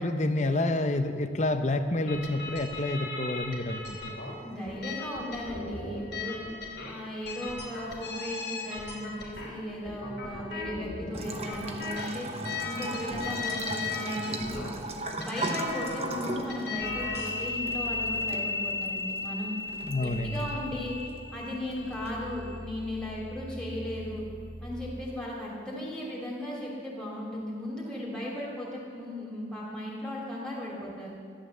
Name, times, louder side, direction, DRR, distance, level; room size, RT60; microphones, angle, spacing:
voice 1, 0.0-4.2 19.8-20.4, left 2 dB, 40° left, 8 dB, 0.9 m, -29 dB
sound 1, 2.1-17.4, left 4 dB, 75° left, 3.1 m, -38 dB
voice 2, 4.4-6.4 6.8-12.3 12.6-14.7 15.2-19.6 20.0-20.9 21.3-24.2 24.6-31.1, left 1 dB, 5° left, -5 dB, 3.1 m, -36 dB
Bathtub (filling or washing) / Trickle dribble, 11.1-22.1, right 2 dB, 35° right, 1.1 m, -39 dB
sound 2, 16.8-25.4, left 3 dB, 20° left, 1.3 m, -36 dB
14.5 x 11.5 x 7.4 m, 2.2 s
head